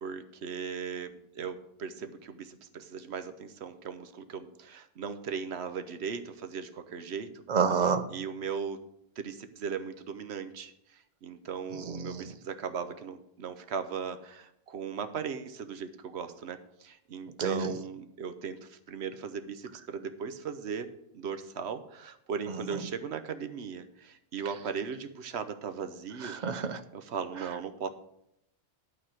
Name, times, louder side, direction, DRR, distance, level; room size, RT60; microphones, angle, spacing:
voice 1, 0.0-7.4 8.1-8.8 9.2-20.9 21.1-26.4 26.9-27.9, right 6 dB, 85° right, 10 dB, 1.1 m, -38 dB
voice 2, 7.5-8.1 11.8-12.3 17.4-17.7 26.3-26.8, right 6 dB, 50° right, 11 dB, 0.7 m, -28 dB
11.5 x 4.1 x 7.6 m, 0.80 s
omnidirectional pair, 1.1 m